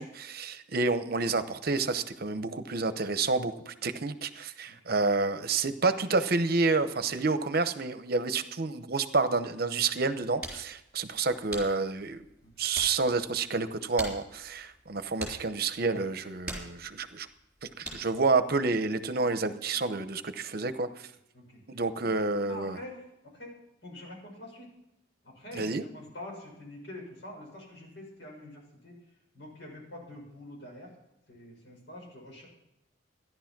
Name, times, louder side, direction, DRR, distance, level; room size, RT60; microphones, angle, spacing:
voice 1, 0.0-12.2 12.6-17.3 17.8-20.9 21.7-22.8 25.5-25.8, right 3 dB, 50° right, 11 dB, 0.8 m, -29 dB
sound 1, 10.0-18.3, right 1 dB, 5° right, 3.7 m, -45 dB
voice 2, 22.4-23.5 23.8-24.7 25.2-28.9 29.3-30.9 31.3-32.5, left 1 dB, 65° left, -1 dB, 6.6 m, -46 dB
14.0 x 11.0 x 6.0 m, 0.88 s
head